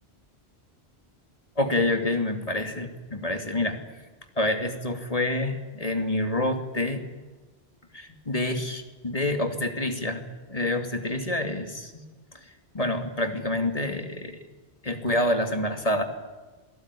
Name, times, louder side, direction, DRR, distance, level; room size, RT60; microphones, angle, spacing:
voice 1, 1.6-3.8 4.4-7.0 7.9-12.1 12.4-14.4 14.8-16.0, left 1 dB, 35° left, 6 dB, 2.6 m, -27 dB
27.0 x 18.5 x 9.9 m, 1.3 s
omnidirectional pair, 1.1 m